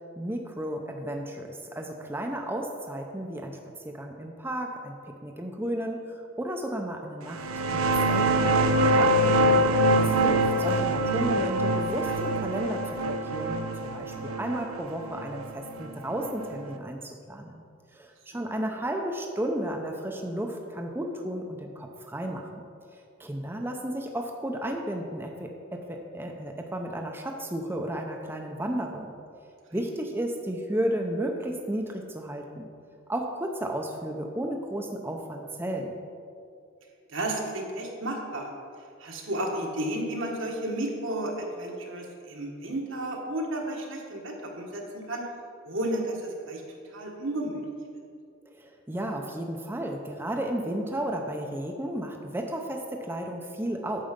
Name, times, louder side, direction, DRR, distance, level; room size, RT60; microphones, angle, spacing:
voice 1, 0.2-7.5 7.7-9.4 9.9-17.6 17.9-22.6 23.2-29.1 29.7-32.7 33.1-36.0 48.6-54.0, right 1 dB, 10° right, 2 dB, 0.6 m, -33 dB
sound 1, 7.3-16.6, right 1 dB, 90° right, 0.7 m, -24 dB
voice 2, 37.1-38.5 39.0-45.3 45.6-46.6 46.9-47.6, right 1 dB, 65° right, 1 dB, 1.4 m, -32 dB
9.0 x 6.8 x 5.2 m, 2.3 s
head